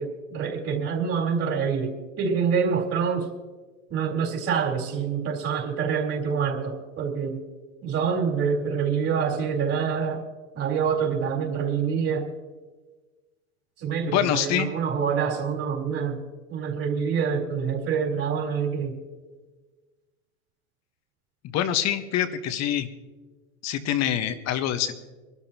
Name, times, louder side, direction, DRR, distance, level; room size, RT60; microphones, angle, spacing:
voice 1, 0.0-3.3 3.9-7.4 7.8-10.2 10.5-12.3 13.8-16.2 16.5-19.0, right 6 dB, 35° right, 0 dB, 4.1 m, -26 dB
voice 2, 14.0-14.7 21.5-22.9 23.6-24.9, left 10 dB, 40° left, 10 dB, 1.4 m, -25 dB
25.5 x 12.5 x 3.0 m, 1.3 s
hypercardioid pair, 95°, 40 cm